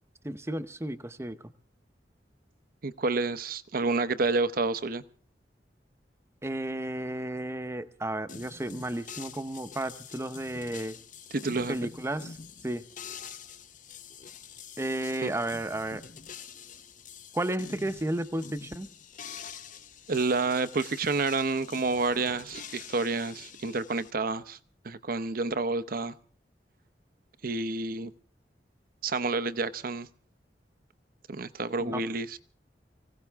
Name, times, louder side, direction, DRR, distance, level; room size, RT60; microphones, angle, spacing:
voice 1, 0.2-1.4 6.4-11.0 11.5-12.3 12.6-12.8 14.8-16.0 17.3-18.9 31.8-32.0, right 1 dB, 15° right, 0.8 m, -33 dB
voice 2, 2.8-5.0 11.3-11.9 15.2-15.3 20.1-24.6 24.8-26.1 27.4-28.1 29.0-30.1 31.3-32.4, right 3 dB, 55° right, 0.8 m, -29 dB
sound 1, 8.3-24.1, left 6 dB, 45° left, 0.8 m, -46 dB
24.0 x 16.5 x 3.5 m
head